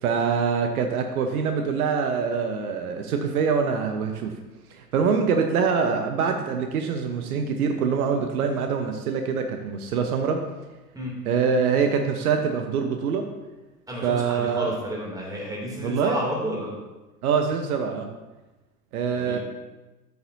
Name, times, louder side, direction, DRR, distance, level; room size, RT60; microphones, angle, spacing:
voice 1, 0.0-4.3 4.7-10.4 11.2-13.3 14.0-14.8 15.8-16.2 17.2-18.1 18.9-19.4, right 6 dB, 65° right, 5 dB, 1.1 m, -24 dB
voice 2, 13.9-16.7 19.1-19.4, equal, 10° right, -3 dB, 2.8 m, -31 dB
14.0 x 7.0 x 2.7 m, 1.1 s
hypercardioid pair, 100°, 47 cm